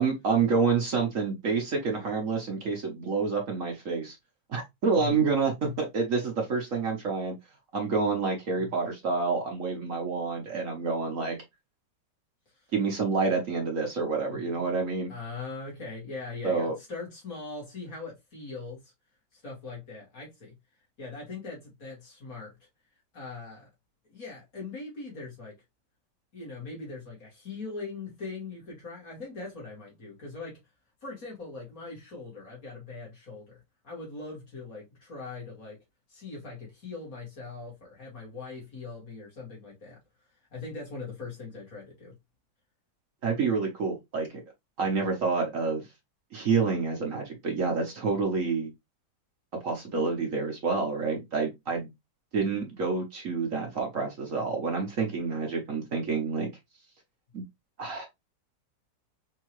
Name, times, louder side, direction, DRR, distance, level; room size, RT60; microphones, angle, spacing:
voice 1, 0.0-4.2 4.5-7.3 7.7-11.4 12.7-15.1 16.4-16.7 43.2-44.4 44.8-45.9 46.3-48.7 49.6-51.9 52.3-56.5 57.3-57.4 57.8-58.1, right 4 dB, 55° right, 1.1 m, -28 dB
voice 2, 14.3-14.7 15.1-18.9 19.3-20.5 21.0-22.6 23.1-23.7 24.1-25.6 26.3-30.6 31.0-35.8 36.1-40.0 40.5-42.1, left 4 dB, 55° left, 2.2 m, -41 dB
4.5 x 2.8 x 3.0 m
omnidirectional pair, 1.9 m